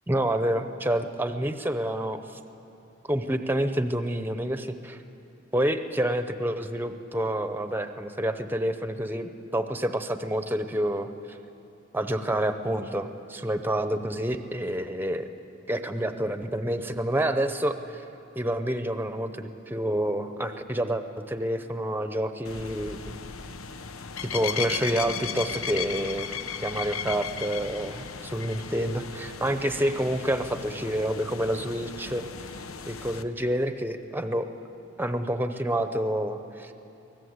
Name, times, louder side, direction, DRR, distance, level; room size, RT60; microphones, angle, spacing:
voice 1, 0.1-2.2 3.1-5.0 5.5-11.4 11.9-15.3 15.7-18.0 18.4-23.2 24.2-26.3 26.6-32.5 32.9-34.5 35.0-36.7, right 1 dB, 10° right, 9 dB, 0.8 m, -28 dB
sound 1, 22.4-33.2, left 6 dB, 85° left, 1.0 m, -36 dB
24.5 x 18.5 x 8.1 m, 2.9 s
head